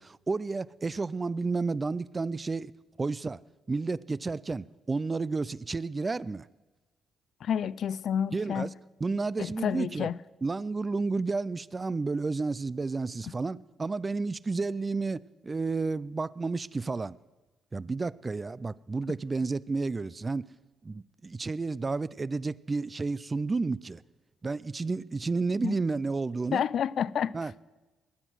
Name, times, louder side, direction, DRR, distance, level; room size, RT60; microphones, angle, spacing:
voice 1, 0.0-2.7 3.0-3.4 3.7-6.5 8.3-8.7 9.0-10.1 10.4-17.2 17.7-20.5 20.8-24.0 24.4-26.6 27.3-27.6, right 3 dB, 25° right, 0.3 m, -31 dB
voice 2, 7.4-8.7 9.4-10.2 25.6-25.7 26.5-27.3, left 8 dB, 65° left, 0.4 m, -29 dB
21.0 x 8.0 x 6.3 m
cardioid pair, 90°, 0 cm